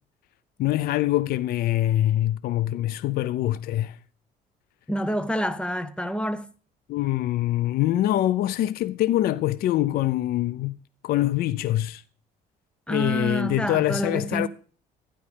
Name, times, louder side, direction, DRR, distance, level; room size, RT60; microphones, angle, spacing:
voice 1, 0.6-4.0 6.9-10.8 11.0-12.0 12.9-14.5, left 14 dB, 65° left, 0.4 m, -24 dB
voice 2, 4.9-6.5 12.9-14.5, equal, 5° left, 0.6 m, -27 dB
12.5 x 9.8 x 3.4 m
cardioid pair, 110°, 17 cm